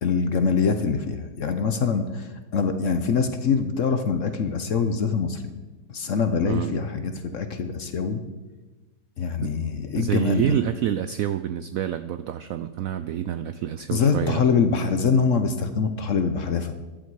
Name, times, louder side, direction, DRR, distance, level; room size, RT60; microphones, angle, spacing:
voice 1, 0.0-5.4 5.9-8.2 9.2-10.4 13.9-16.7, left 5 dB, 55° left, 9 dB, 1.0 m, -24 dB
voice 2, 6.5-6.8 9.4-9.5 10.0-14.4, right 10 dB, 75° right, 11 dB, 0.7 m, -27 dB
15.0 x 11.5 x 4.7 m, 1.2 s
omnidirectional pair, 1.9 m